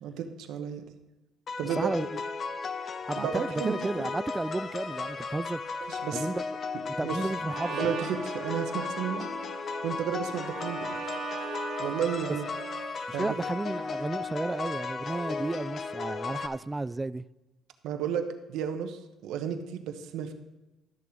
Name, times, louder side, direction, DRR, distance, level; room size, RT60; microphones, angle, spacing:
voice 1, 0.0-0.9 1.6-1.9 3.2-3.8 5.8-6.3 7.0-7.2 7.7-9.3 9.8-11.0 11.8-12.5 13.1-13.4 17.8-20.3, right 8 dB, 75° right, 1.1 m, -32 dB
sound 1, 1.5-16.5, left 4 dB, 45° left, 0.7 m, -35 dB
voice 2, 1.8-2.2 3.0-5.6 6.1-6.4 7.0-7.8 13.1-17.3, right 2 dB, 15° right, 0.3 m, -32 dB
Trumpet, 7.5-12.9, right 8 dB, 50° right, 1.4 m, -40 dB
12.5 x 6.7 x 5.0 m
cardioid pair, 100°, 0 cm